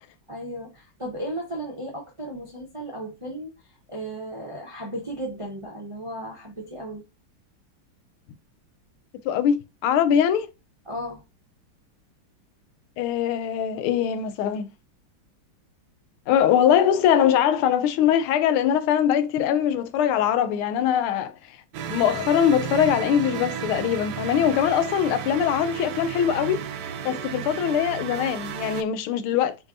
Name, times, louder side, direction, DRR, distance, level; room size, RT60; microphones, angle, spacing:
voice 1, 0.3-3.5 3.9-7.0 10.9-11.2, right 1 dB, 40° right, 0.4 m, -35 dB
voice 2, 9.2-9.6 9.8-10.5 13.0-14.7 16.3-21.3 21.9-26.6 27.0-29.6, left 9 dB, 90° left, 1.5 m, -22 dB
sound 1, 21.7-28.8, right 8 dB, 70° right, 1.0 m, -33 dB
6.6 x 2.8 x 2.6 m
omnidirectional pair, 2.3 m